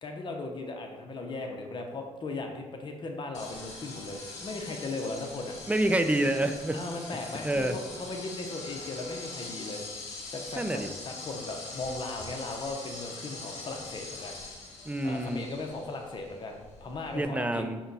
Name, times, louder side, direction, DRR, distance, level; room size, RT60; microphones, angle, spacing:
voice 1, 0.0-5.5 6.7-9.8 10.3-14.4 15.0-17.7, left 2 dB, 40° left, 3 dB, 0.7 m, -37 dB
sound 1, 3.3-17.2, left 3 dB, 70° left, 0.9 m, -43 dB
voice 2, 5.7-6.8 7.4-7.8 10.6-10.9 14.9-15.4 17.1-17.8, right 1 dB, 10° right, 7 dB, 0.4 m, -27 dB
5.8 x 2.2 x 4.1 m, 1.2 s
hypercardioid pair, 50°, 12 cm